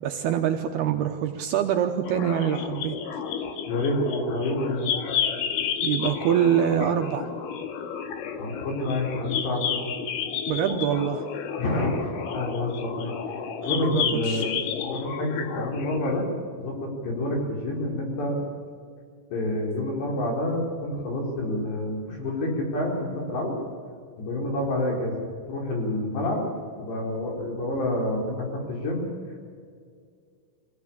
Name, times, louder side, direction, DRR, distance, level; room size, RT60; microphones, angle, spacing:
voice 1, 0.0-3.0 5.8-7.3 10.5-11.3 13.7-14.4, right 9 dB, 75° right, 5 dB, 2.5 m, -25 dB
sound 1, 2.0-16.2, left 7 dB, 80° left, 3.9 m, -31 dB
voice 2, 3.6-4.9 8.4-9.8 11.6-13.1 13.7-14.5 14.8-16.3 16.6-18.4 19.3-23.6 24.2-25.2 25.5-26.5 26.8-29.1, left 1 dB, 65° left, 0 dB, 6.6 m, -28 dB
23.5 x 16.5 x 8.6 m, 2.1 s
omnidirectional pair, 5.4 m